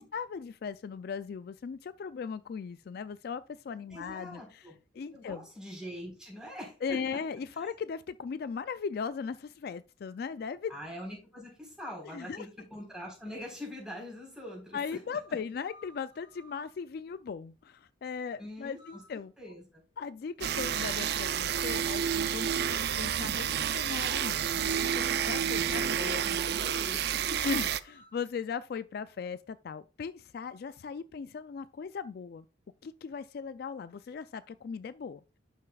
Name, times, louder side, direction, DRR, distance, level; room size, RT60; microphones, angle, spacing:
voice 1, 0.0-4.6 4.9-5.5 6.8-10.7 12.1-12.5 14.7-19.3 20.0-26.2 27.4-32.5 32.8-35.2, left 6 dB, 55° left, 0.3 m, -38 dB
voice 2, 3.9-4.7 5.1-7.2 7.5-7.7 10.7-15.2 18.4-19.0 19.4-19.8 25.5-27.5, equal, 5° right, 4.1 m, -44 dB
sound 1, 14.2-14.3 15.2-16.8 18.8-19.2 20.4-20.9 21.6-22.0 22.2-23.1 25.7-26.0 26.4-28.2, right 2 dB, 25° right, 1.8 m, -55 dB
sound 2, 20.4-27.8, right 8 dB, 55° right, 0.4 m, -30 dB
11.5 x 6.5 x 2.3 m
head